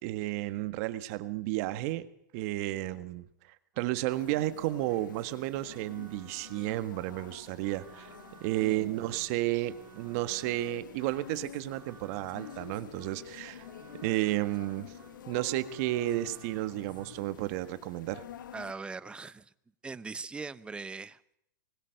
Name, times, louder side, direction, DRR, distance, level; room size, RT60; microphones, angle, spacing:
voice 1, 0.0-2.1 2.3-3.2 3.8-8.1 8.4-13.7 14.0-14.9 15.3-18.2, right 16 dB, 50° right, 12 dB, 1.6 m, -32 dB
sound 1, 3.7-17.2, right 10 dB, 30° right, 2.5 m, -55 dB
sound 2, 4.1-18.7, left 9 dB, 80° left, 1.6 m, -49 dB
voice 2, 8.6-9.3 18.5-19.5 19.8-21.4, right 4 dB, 10° right, 15 dB, 0.8 m, -41 dB
21.0 x 19.0 x 6.7 m, 0.73 s
hypercardioid pair, 130°, 10 cm